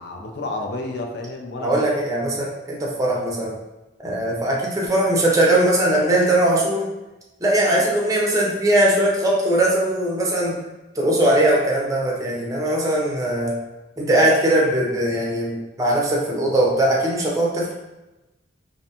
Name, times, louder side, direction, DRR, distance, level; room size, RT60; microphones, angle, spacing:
voice 1, 0.0-1.8 4.2-4.4 12.3-12.6, left 2 dB, 55° left, 1 dB, 0.4 m, -31 dB
voice 2, 1.6-3.5 4.0-6.8 7.4-10.6 11.0-13.5 14.0-17.7, right 1 dB, 20° right, -3 dB, 0.5 m, -20 dB
2.5 x 2.1 x 2.8 m, 1.0 s
head